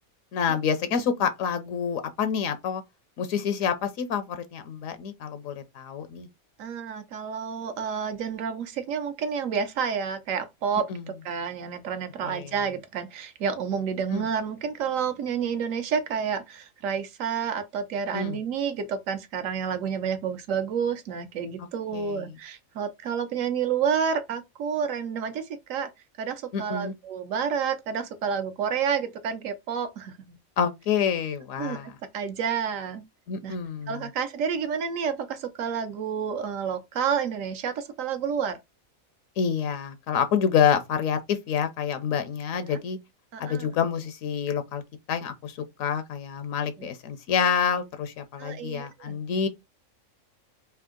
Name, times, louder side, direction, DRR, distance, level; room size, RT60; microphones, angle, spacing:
voice 1, 0.3-2.8 3.2-6.3 10.9-11.0 12.2-12.5 14.1-14.3 18.1-18.4 21.9-22.3 26.5-26.9 30.6-32.0 33.3-34.1 39.4-43.0 43.4-44.8 45.1-49.5, left 7 dB, 75° left, 1.0 m, -27 dB
voice 2, 6.6-10.8 11.2-25.9 26.2-30.4 31.6-31.8 32.1-33.0 33.4-33.6 33.9-38.6 42.7-42.8 43.3-43.7 46.8-46.9 48.4-49.2, right 7 dB, 70° right, 1.0 m, -29 dB
3.5 x 2.7 x 3.6 m
omnidirectional pair, 1.4 m